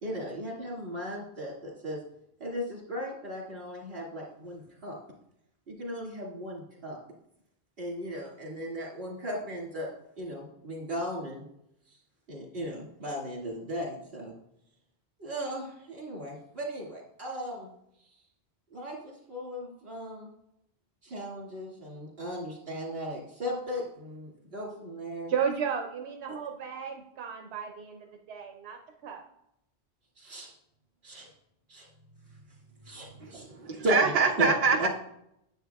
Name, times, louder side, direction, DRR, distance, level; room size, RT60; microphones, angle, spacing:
voice 1, 0.0-2.0 2.4-5.0 5.7-7.0 7.8-9.9 10.2-11.4 12.3-14.3 15.2-17.7 18.7-20.3 21.0-25.3 26.3-26.4 30.2-30.5 31.0-31.3 31.7-31.9 32.8-33.5 33.8-34.1 34.4-34.5 34.8-34.9, equal, 65° right, -2 dB, 2.3 m, -36 dB
voice 2, 25.3-29.2, right 7 dB, 85° right, 3 dB, 0.9 m, -34 dB
voice 3, 33.2-34.9, right 5 dB, 40° right, 0 dB, 0.8 m, -25 dB
9.3 x 7.6 x 2.3 m, 0.78 s
omnidirectional pair, 1.1 m